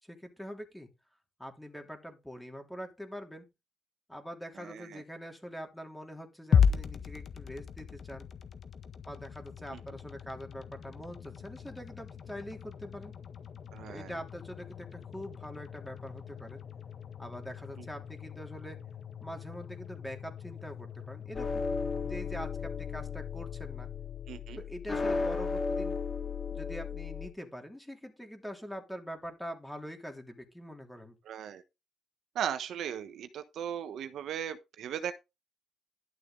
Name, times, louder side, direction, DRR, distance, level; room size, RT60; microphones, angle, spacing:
voice 1, 0.0-0.9 1.4-3.5 4.1-8.3 9.1-13.1 13.9-16.6 17.2-18.8 19.2-21.6 22.0-23.9 24.6-26.0 26.5-31.2, equal, 5° left, 3.1 m, -44 dB
voice 2, 4.6-5.0 9.7-9.8 13.7-14.1 17.8-17.9 24.3-24.6 31.2-31.6 32.3-35.1, right 9 dB, 75° right, 1.1 m, -37 dB
sound 1, 6.5-24.7, left 7 dB, 55° left, 1.4 m, -36 dB
sound 2, 21.3-27.3, left 4 dB, 25° left, 2.0 m, -35 dB
12.0 x 7.1 x 3.8 m
cardioid pair, 90°, 0 cm